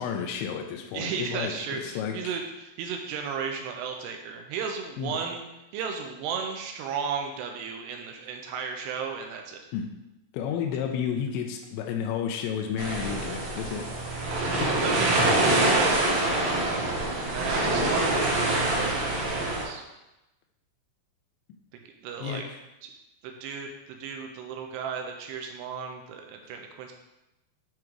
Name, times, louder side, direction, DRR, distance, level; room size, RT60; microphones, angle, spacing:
voice 1, 0.0-2.2 5.0-5.1 9.7-9.9 10.3-13.9 14.6-14.9 22.2-22.6, left 8 dB, 85° left, 3 dB, 2.9 m, -31 dB
voice 2, 0.9-9.6 14.7-16.1 16.5-18.0 18.7-19.8 21.7-22.4 22.8-22.9 23.2-26.9, right 6 dB, 80° right, 3 dB, 2.5 m, -35 dB
sound 1, 12.8-19.6, right 2 dB, 65° right, 1.8 m, -25 dB
7.9 x 3.6 x 4.6 m, 0.95 s
omnidirectional pair, 5.3 m